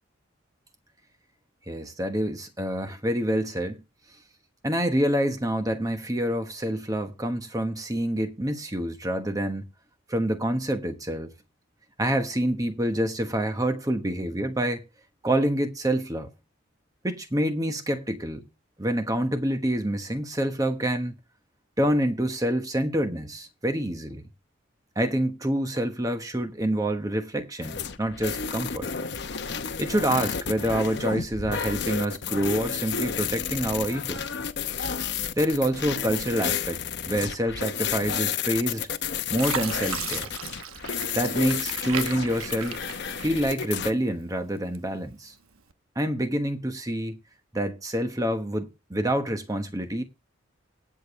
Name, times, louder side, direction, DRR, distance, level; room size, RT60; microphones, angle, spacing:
voice 1, 1.7-3.8 4.6-9.7 10.1-11.3 12.0-14.8 15.2-16.3 17.0-18.5 18.8-21.1 21.8-24.3 25.0-28.9 29.8-34.2 35.4-36.8 37.1-38.9 39.3-40.3 41.1-42.8 43.2-45.3 46.0-47.2 47.5-50.0, right 1 dB, 15° right, 1.1 m, -27 dB
sound 1, 27.6-43.9, left 7 dB, 55° left, 0.9 m, -31 dB
Fill (with liquid), 38.6-39.0 39.4-43.8 44.2-45.0 45.6-45.7, right 7 dB, 90° right, 1.0 m, -36 dB
18.0 x 7.0 x 3.2 m
head